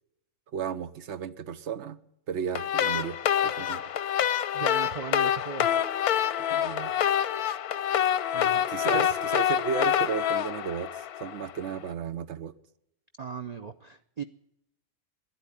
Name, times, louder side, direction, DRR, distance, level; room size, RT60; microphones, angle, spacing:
voice 1, 0.5-2.0 2.3-3.2 3.4-3.8 6.5-6.9 8.7-10.9 11.2-12.5, right 7 dB, 55° right, 1.0 m, -33 dB
sound 1, 2.5-11.6, left 10 dB, 80° left, 1.2 m, -27 dB
voice 2, 4.5-5.7 8.3-8.6 8.9-9.1 13.2-14.2, right 6 dB, 80° right, 0.3 m, -37 dB
12.0 x 9.9 x 9.7 m
omnidirectional pair, 1.6 m